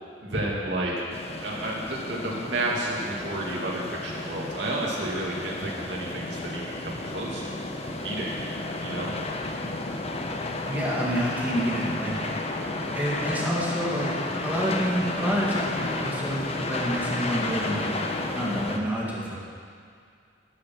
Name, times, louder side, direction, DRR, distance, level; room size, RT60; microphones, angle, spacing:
voice 1, 0.2-0.9 1.4-8.3 8.8-9.1, right 1 dB, 70° right, -4 dB, 2.4 m, -31 dB
sound 1, 1.1-18.8, left 2 dB, 35° left, 0.9 m, -32 dB
voice 2, 10.7-12.1 12.8-14.1 14.4-17.9 18.3-19.4, equal, 10° right, -5 dB, 2.0 m, -28 dB
11.5 x 8.6 x 6.1 m, 2.3 s
head